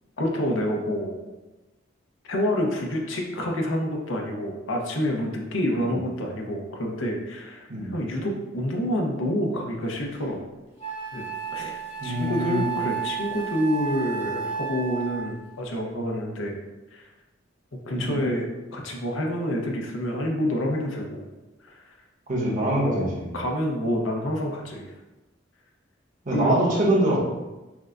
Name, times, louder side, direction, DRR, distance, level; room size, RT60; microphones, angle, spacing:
voice 1, 0.2-1.2 2.2-10.4 11.1-11.3 11.5-16.6 16.9-17.0 17.9-18.5 18.7-21.3 21.6-21.8 22.8-24.9 26.3-26.6, equal, 85° left, 0 dB, 0.7 m, -28 dB
Wind instrument woodwind instrument, 10.1-10.2 10.8-15.4, right 6 dB, 35° left, 0.9 m, -32 dB
voice 2, 12.0-12.8 18.0-18.2 22.3-23.2 26.2-27.2, right 1 dB, 40° right, -6 dB, 1.1 m, -24 dB
6.1 x 2.2 x 2.5 m, 1.1 s
head